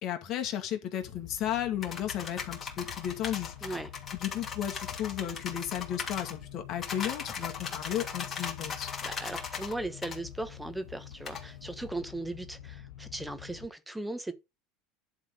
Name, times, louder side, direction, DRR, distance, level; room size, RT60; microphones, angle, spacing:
voice 1, 0.0-3.5 4.1-8.9, left 11 dB, 50° left, 2.1 m, -34 dB
sound 1, 1.0-13.7, left 11 dB, 85° left, 1.4 m, -47 dB
sound 2, 1.8-6.4 6.8-9.7 10.0-10.2 11.3-11.4, left 6 dB, 35° left, 2.8 m, -38 dB
voice 2, 3.6-3.9 9.0-14.3, right 2 dB, 5° right, 1.2 m, -38 dB
11.0 x 3.9 x 5.2 m
supercardioid pair, 100°, 0 cm